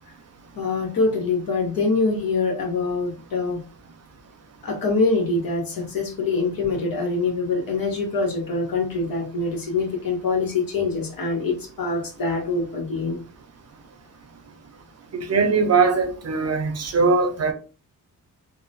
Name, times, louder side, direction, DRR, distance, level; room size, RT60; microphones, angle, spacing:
voice 1, 0.5-3.6 4.6-13.2, left 3 dB, 75° left, 1.0 m, -24 dB
voice 2, 15.1-17.5, right 4 dB, 50° right, 0.6 m, -20 dB
2.9 x 2.0 x 2.6 m
wide cardioid pair, 120°, 34 cm